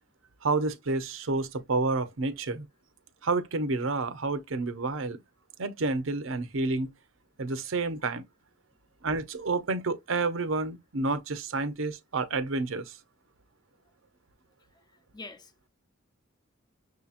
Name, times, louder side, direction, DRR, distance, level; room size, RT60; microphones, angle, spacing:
voice 1, 0.4-2.7 3.2-5.2 5.6-6.9 7.4-8.2 9.0-13.0, right 3 dB, 85° right, 0.7 m, -29 dB
voice 2, 15.1-15.7, left 3 dB, 20° left, 0.5 m, -45 dB
6.3 x 2.8 x 2.5 m
head